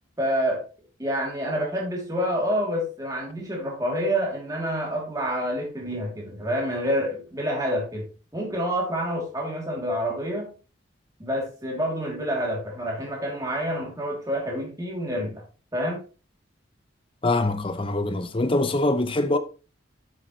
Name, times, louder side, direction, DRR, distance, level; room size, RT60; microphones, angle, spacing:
voice 1, 0.2-0.6 1.0-10.5 11.2-15.4 15.7-16.0, equal, 20° right, 2.9 m, -28 dB
voice 2, 17.2-19.4, left 2 dB, 25° left, 0.7 m, -23 dB
8.2 x 7.5 x 3.2 m
head